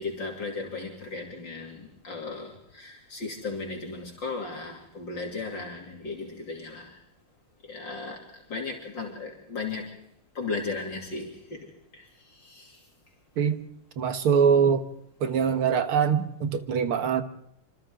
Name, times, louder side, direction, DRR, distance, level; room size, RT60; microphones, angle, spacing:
voice 1, 0.0-7.0 7.6-10.0 10.4-12.8, left 3 dB, 60° left, 0 dB, 3.6 m, -36 dB
voice 2, 14.0-14.9 15.2-17.2, right 7 dB, 85° right, 8 dB, 2.3 m, -23 dB
26.5 x 26.5 x 3.8 m, 0.76 s
omnidirectional pair, 2.3 m